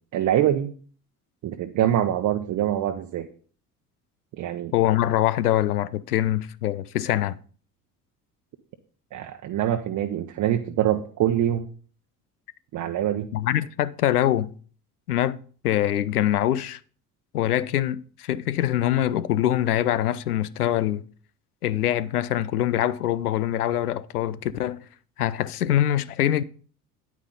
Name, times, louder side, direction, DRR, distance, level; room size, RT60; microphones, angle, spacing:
voice 1, 0.1-0.7 1.4-3.3 4.4-4.7 9.1-11.7 12.7-13.3, right 11 dB, 40° right, 0.9 m, -24 dB
voice 2, 4.7-7.4 13.3-14.5 15.1-15.4 15.6-16.8 17.3-21.0 21.6-24.8 25.2-26.4, left 12 dB, 75° left, 0.6 m, -24 dB
9.6 x 9.3 x 3.8 m
figure-of-eight pair, 60°, 45 cm